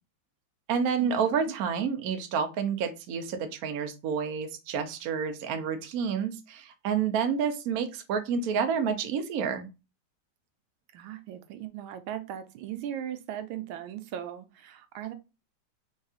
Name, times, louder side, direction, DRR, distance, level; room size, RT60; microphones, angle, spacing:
voice 1, 0.7-9.7, right 6 dB, 60° right, 0.9 m, -29 dB
voice 2, 10.9-15.1, right 10 dB, 85° right, 1.5 m, -38 dB
4.0 x 3.6 x 2.4 m
omnidirectional pair, 2.2 m